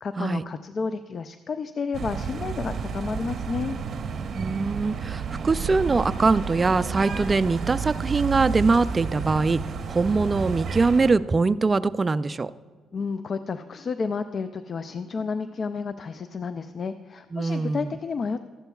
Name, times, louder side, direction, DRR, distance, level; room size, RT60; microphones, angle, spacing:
voice 1, 0.0-3.8 12.9-18.4, left 5 dB, 45° left, 11 dB, 0.4 m, -31 dB
sound 1, 1.9-11.1, right 5 dB, 55° right, 0.8 m, -31 dB
voice 2, 4.3-12.5 17.3-17.9, right 3 dB, 30° right, 15 dB, 0.3 m, -23 dB
14.0 x 11.5 x 2.3 m, 1.5 s
cardioid pair, 90°, 0 cm